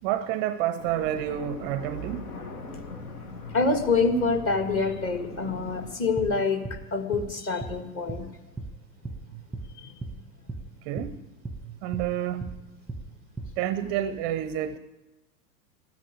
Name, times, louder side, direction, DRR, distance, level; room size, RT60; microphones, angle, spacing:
voice 1, 0.0-2.2 9.3-9.4 10.8-11.2 11.8-12.6 13.6-14.8, right 11 dB, 30° right, 0.5 m, -29 dB
sound 1, 0.8-6.0, left 2 dB, 75° left, 1.9 m, -40 dB
voice 2, 3.5-6.6 6.9-8.3 9.8-9.9, left 4 dB, 30° left, 1.7 m, -26 dB
sound 2, 6.2-6.3 6.6-6.8 7.1-7.3 7.6-7.8 8.1-8.2 8.6-8.7 9.0-9.2 9.5-9.7 10.0-10.2 10.5-10.6 11.0-11.1 11.4-11.6 11.9-12.1 12.4-12.6 12.9-13.0 13.4-13.5, right 3 dB, ahead, 1.2 m, -36 dB
13.0 x 10.0 x 9.2 m
figure-of-eight pair, 90°, 45 cm